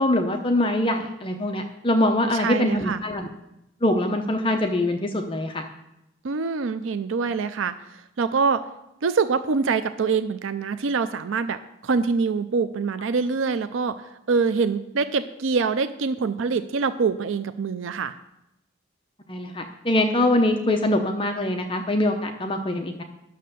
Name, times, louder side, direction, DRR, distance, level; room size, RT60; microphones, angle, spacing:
voice 1, 0.0-3.3 3.8-5.6 19.3-23.0, left 1 dB, 25° left, 4 dB, 0.7 m, -23 dB
voice 2, 2.3-3.0 6.2-7.7 8.2-8.6 9.0-11.6 11.8-14.0 14.3-18.1, right 5 dB, 80° right, 11 dB, 0.5 m, -24 dB
11.0 x 6.6 x 6.8 m, 0.89 s
head